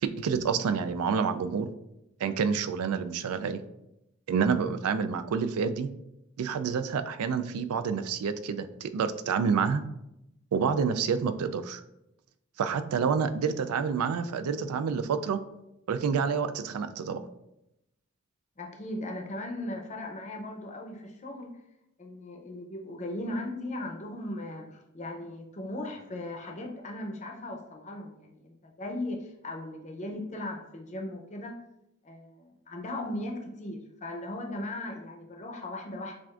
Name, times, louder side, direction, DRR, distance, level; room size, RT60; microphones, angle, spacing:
voice 1, 0.0-1.7 2.2-3.6 4.3-5.9 6.4-9.8 10.5-11.8 12.6-15.4 15.9-17.2, right 6 dB, 85° right, 11 dB, 0.4 m, -28 dB
voice 2, 18.6-21.6 22.0-31.5 32.0-36.1, left 1 dB, 35° left, 2 dB, 0.6 m, -38 dB
7.4 x 2.5 x 2.4 m, 0.86 s
head